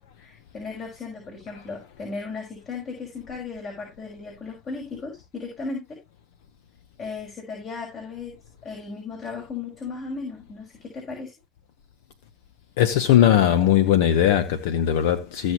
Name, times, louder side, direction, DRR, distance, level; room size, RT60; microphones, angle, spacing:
voice 1, 0.2-6.0 7.0-8.4 8.6-11.3, left 4 dB, 45° left, 5.9 m, -36 dB
voice 2, 12.8-15.5, left 10 dB, 75° left, 1.0 m, -19 dB
16.5 x 6.4 x 3.0 m
hypercardioid pair, 75°, 0 cm